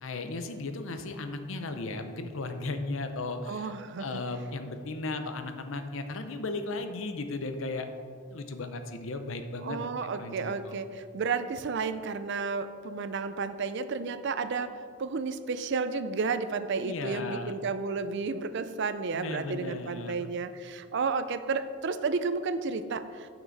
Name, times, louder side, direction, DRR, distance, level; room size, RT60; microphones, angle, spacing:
voice 1, 0.0-3.7 4.0-7.9 8.3-9.8 10.1-10.7 16.8-17.5 19.1-20.3, left 2 dB, 65° left, 7 dB, 0.7 m, -36 dB
voice 2, 3.4-4.2 9.6-14.7 15.0-23.3, right 4 dB, 55° right, 11 dB, 0.4 m, -32 dB
9.1 x 6.0 x 4.0 m, 2.1 s
head